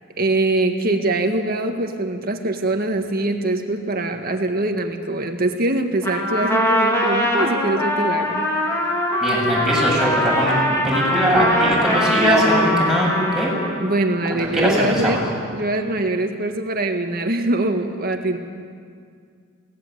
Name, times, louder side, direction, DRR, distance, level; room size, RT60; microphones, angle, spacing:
voice 1, 0.2-8.5 13.8-15.2 15.5-18.4, right 2 dB, 50° right, 5 dB, 1.8 m, -23 dB
Trumpet, 6.0-13.9, equal, 15° left, 3.8 m, -22 dB
voice 2, 9.2-13.1 13.3-13.5 14.3-15.2, equal, ahead, -5 dB, 7.9 m, -20 dB
23.0 x 18.5 x 8.1 m, 2.1 s
head